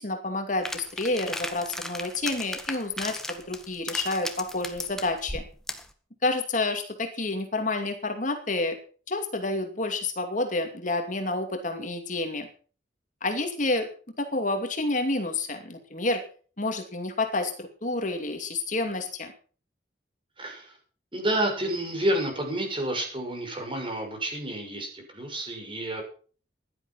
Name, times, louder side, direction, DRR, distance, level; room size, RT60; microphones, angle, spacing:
voice 1, 0.0-5.4 6.2-8.8 9.1-12.5 13.2-13.9 14.2-16.2 16.6-19.3, left 2 dB, 45° left, 5 dB, 2.5 m, -29 dB
sound 1, 0.6-5.9, left 1 dB, 5° left, 1.7 m, -36 dB
voice 2, 20.4-20.8 21.1-26.0, right 1 dB, 30° right, 3 dB, 6.3 m, -29 dB
16.0 x 11.5 x 5.8 m, 0.41 s
head